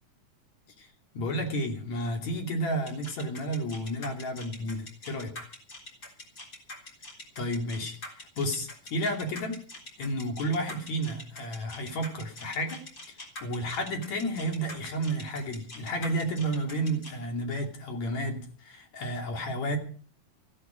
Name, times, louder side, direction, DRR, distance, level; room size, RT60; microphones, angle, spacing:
voice 1, 1.1-5.3 7.4-9.6 10.0-12.8 13.4-19.8, right 1 dB, 60° left, 3 dB, 3.9 m, -31 dB
sound 1, 2.9-17.1, left 2 dB, 30° left, 4.1 m, -44 dB
16.0 x 15.5 x 5.1 m, 0.43 s
omnidirectional pair, 3.6 m